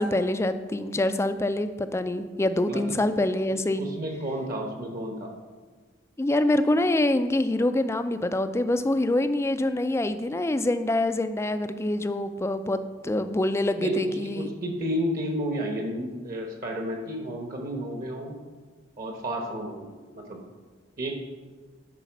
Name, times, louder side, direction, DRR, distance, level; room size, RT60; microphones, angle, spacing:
voice 1, 0.0-3.9 6.2-14.5, left 1 dB, 15° left, 10 dB, 0.3 m, -25 dB
voice 2, 3.8-5.3 13.8-18.3 19.0-20.4 21.0-21.1, equal, 45° right, 2 dB, 1.1 m, -31 dB
9.9 x 4.1 x 6.0 m, 1.4 s
head